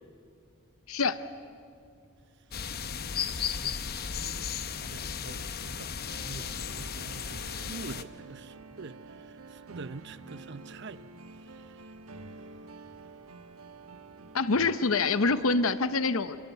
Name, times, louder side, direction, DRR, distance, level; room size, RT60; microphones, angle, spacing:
voice 1, 0.9-1.2 14.3-16.4, left 3 dB, 75° left, 0.8 m, -26 dB
sound 1, 2.5-8.0, left 7 dB, 45° left, 0.8 m, -35 dB
voice 2, 3.4-9.0 9.5-11.0 11.6-11.7, right 3 dB, 55° right, 0.8 m, -45 dB
sound 2, 6.0-15.7, right 3 dB, 90° right, 1.4 m, -48 dB
28.0 x 25.0 x 8.1 m
head